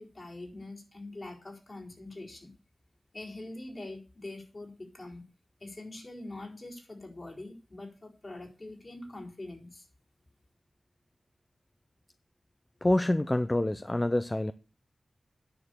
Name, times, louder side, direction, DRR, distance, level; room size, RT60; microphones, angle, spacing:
voice 1, 0.0-2.5 3.1-5.3 5.6-9.9, left 2 dB, 45° left, 4.2 m, -44 dB
voice 2, 12.8-14.5, left 1 dB, 25° left, 0.5 m, -26 dB
9.9 x 6.3 x 8.5 m
wide cardioid pair, 60°, 0 cm